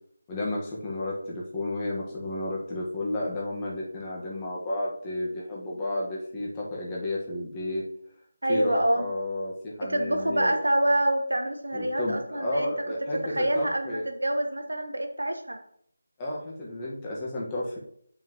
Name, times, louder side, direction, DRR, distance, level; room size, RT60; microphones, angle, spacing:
voice 1, 0.3-7.8 8.5-10.5 11.7-14.0 16.2-17.8, left 1 dB, 20° left, -4 dB, 1.5 m, -32 dB
voice 2, 8.4-9.1 9.8-12.7 13.2-15.6, right 1 dB, 85° right, 5 dB, 1.3 m, -26 dB
8.8 x 5.5 x 3.1 m, 0.67 s
figure-of-eight pair, 165°, 0 cm